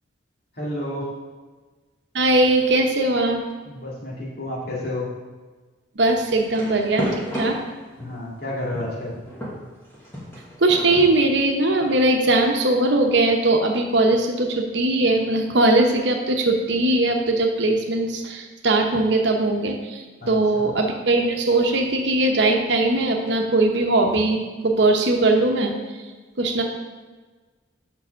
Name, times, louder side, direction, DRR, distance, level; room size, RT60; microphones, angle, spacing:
voice 1, 0.5-1.1 3.6-5.1 8.0-9.1 20.2-20.7, left 1 dB, 50° left, -5 dB, 2.1 m, -31 dB
voice 2, 2.1-3.4 5.9-7.6 10.6-25.8 26.4-26.6, right 2 dB, 70° right, 3 dB, 0.9 m, -20 dB
sound 1, 6.4-8.2 8.7-12.0, equal, 10° left, 1.2 m, -32 dB
5.6 x 4.7 x 6.3 m, 1.3 s
head